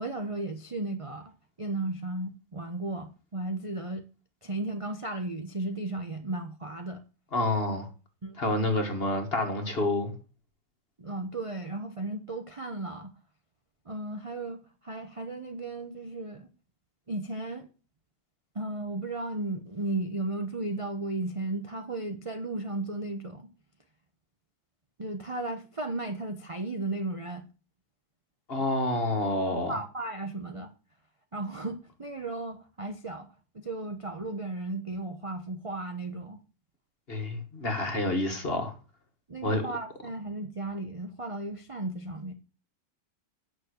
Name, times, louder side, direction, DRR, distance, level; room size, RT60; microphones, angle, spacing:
voice 1, 0.0-1.3 1.6-4.0 4.4-7.0 8.2-8.4 11.0-13.1 13.8-16.5 17.1-17.7 18.5-23.5 25.0-27.5 29.5-30.7 31.3-33.3 33.5-36.4 39.3-42.3, right 2 dB, 30° right, 0.6 m, -35 dB
voice 2, 7.3-7.9 8.4-10.1 28.5-29.8 37.1-38.7 39.4-39.6, left 2 dB, 30° left, 1.7 m, -28 dB
9.3 x 6.4 x 6.5 m
omnidirectional pair, 2.0 m